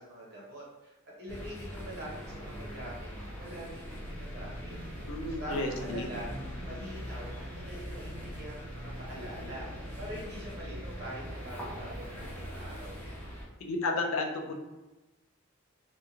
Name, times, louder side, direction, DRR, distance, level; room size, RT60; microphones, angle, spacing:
voice 1, 0.0-3.1 3.4-4.8 5.2-6.3 6.6-12.1 12.3-13.2, equal, 50° right, -5 dB, 0.9 m, -44 dB
sound 1, 1.3-13.4, equal, 10° left, 0.6 m, -41 dB
voice 2, 5.1-6.1 13.6-14.5, left 2 dB, 80° left, 3 dB, 0.4 m, -32 dB
2.6 x 2.3 x 2.8 m, 1.1 s
head